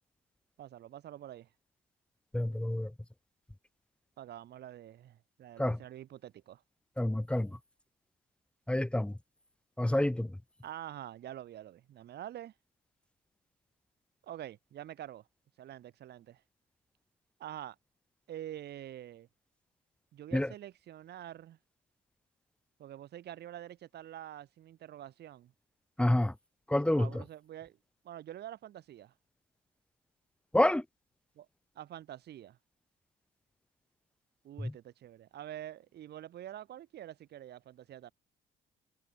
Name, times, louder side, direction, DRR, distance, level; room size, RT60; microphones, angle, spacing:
voice 1, 0.6-1.5 4.2-6.6 10.6-12.5 14.2-15.3 15.6-16.4 17.4-17.8 18.3-19.3 20.1-21.6 22.8-25.5 27.0-27.8 28.0-29.1 31.4-31.5 31.8-32.6 34.4-38.1, right 12 dB, 70° right, 2.1 m, -46 dB
voice 2, 2.3-2.9 5.6-5.8 7.0-7.5 8.7-9.1 9.8-10.3 20.3-20.5 26.0-26.3 26.7-27.1 30.5-30.8 34.6-34.7, left 1 dB, 5° left, 0.8 m, -28 dB
supercardioid pair, 75°, 18 cm